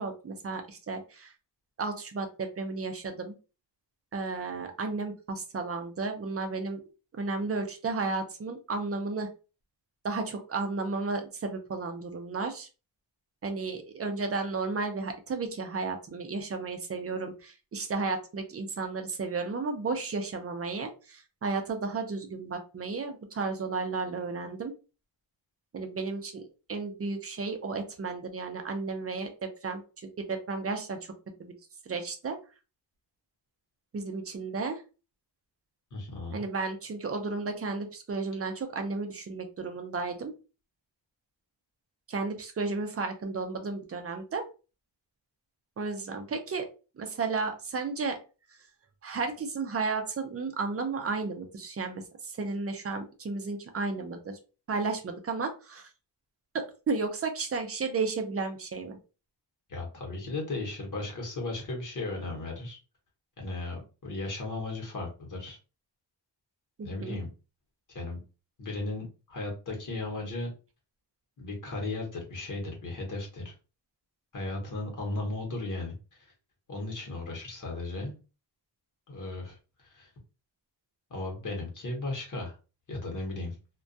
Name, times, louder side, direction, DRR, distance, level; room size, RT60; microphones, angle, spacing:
voice 1, 0.0-1.3 1.8-3.3 4.1-6.8 7.1-9.3 10.0-12.7 13.4-24.7 25.7-26.4 26.7-29.8 30.2-31.0 31.4-31.5 31.9-32.4 33.9-34.8 36.3-40.3 42.1-44.4 45.8-46.7 47.0-48.2 49.0-54.4 54.7-55.9 56.5-59.0 66.8-67.2, right 4 dB, 35° right, 5 dB, 0.5 m, -33 dB
voice 2, 35.9-36.4 59.7-62.8 63.4-65.6 66.8-67.3 67.9-68.2 68.6-70.5 71.4-73.5 74.3-75.9 76.7-78.2 79.1-79.6 79.8-80.1 81.1-82.6 82.9-83.5, left 2 dB, 45° left, 0 dB, 0.9 m, -36 dB
2.2 x 2.2 x 2.6 m, 0.32 s
wide cardioid pair, 160°, 43 cm